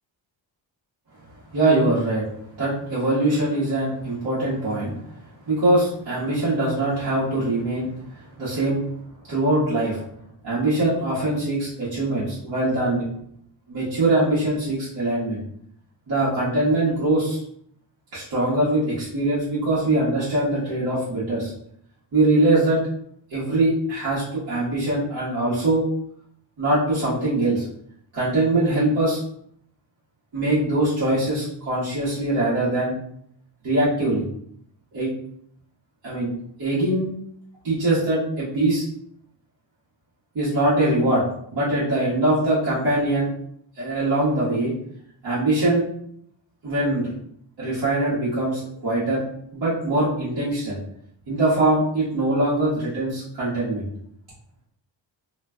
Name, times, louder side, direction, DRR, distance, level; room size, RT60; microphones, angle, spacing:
voice 1, 1.5-2.3 2.6-4.9 5.4-8.8 9.3-10.0 10.4-13.1 13.7-15.4 16.1-17.4 18.1-21.5 22.1-22.8 23.3-25.8 26.6-27.6 28.1-29.2 30.3-32.9 33.6-34.2 34.9-35.1 36.0-36.3 36.6-37.1 37.6-38.8 40.3-41.2 41.5-43.3 43.8-44.7 45.2-45.8 46.6-47.1 47.6-49.2 49.5-50.8 51.3-53.8, right 2 dB, 55° right, -12 dB, 1.5 m, -22 dB
3.2 x 2.9 x 2.3 m, 0.69 s
wide cardioid pair, 130°, 46 cm